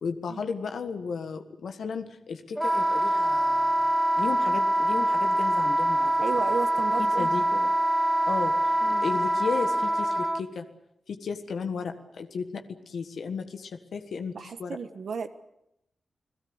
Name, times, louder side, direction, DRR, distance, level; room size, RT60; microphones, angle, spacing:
voice 1, 0.0-3.8 4.2-6.2 7.0-7.4 8.2-8.7 9.0-10.7 11.1-14.8, left 5 dB, 85° left, 6 dB, 1.6 m, -34 dB
Wind instrument woodwind instrument, 2.6-10.4, right 1 dB, 10° right, 2.3 m, -24 dB
voice 2, 6.2-7.7 8.8-9.1 14.3-15.3, right 5 dB, 75° right, 9 dB, 1.4 m, -34 dB
29.5 x 18.0 x 8.0 m, 0.84 s
wide cardioid pair, 85°, 0 cm